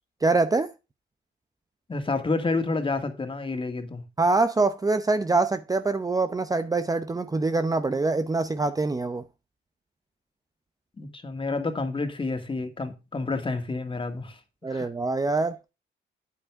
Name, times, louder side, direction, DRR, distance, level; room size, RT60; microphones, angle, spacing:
voice 1, 0.2-0.7 4.2-9.2 14.6-15.6, right 3 dB, 20° right, 0.7 m, -24 dB
voice 2, 1.9-4.0 11.0-14.4 14.7-14.9, left 3 dB, 25° left, 2.2 m, -29 dB
8.9 x 8.4 x 3.6 m
cardioid pair, 90°, 20 cm